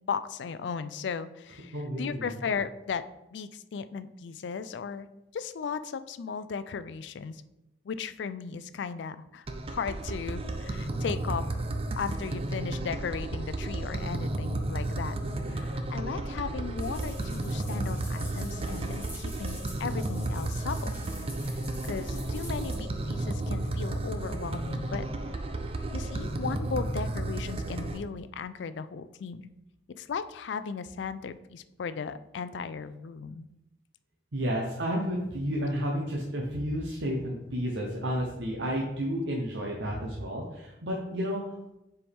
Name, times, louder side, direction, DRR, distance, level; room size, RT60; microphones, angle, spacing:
voice 1, 0.1-3.0 3.3-5.1 5.3-7.4 7.8-11.4 12.0-15.1 15.5-20.9 21.5-25.1 25.9-29.5 30.0-33.5, left 6 dB, 85° left, 13 dB, 0.4 m, -36 dB
voice 2, 1.7-2.3 15.2-15.7 22.1-22.6 34.3-41.4, equal, 85° right, -2 dB, 0.9 m, -32 dB
sound 1, 9.5-28.0, right 2 dB, 30° right, 0.5 m, -33 dB
sound 2, 16.8-22.7, equal, 10° right, 2.3 m, -48 dB
6.9 x 4.6 x 3.5 m, 0.91 s
head